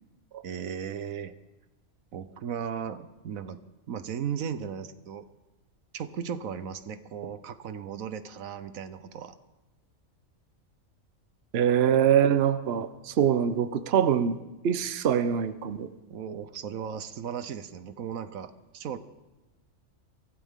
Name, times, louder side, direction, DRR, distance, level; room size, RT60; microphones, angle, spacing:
voice 1, 0.4-1.4 2.1-5.3 5.9-9.4 16.1-19.0, right 8 dB, 80° right, 12 dB, 1.3 m, -36 dB
voice 2, 11.5-14.4 14.6-15.9, right 8 dB, 55° right, 11 dB, 0.9 m, -24 dB
23.5 x 15.5 x 3.7 m, 1.1 s
omnidirectional pair, 1.4 m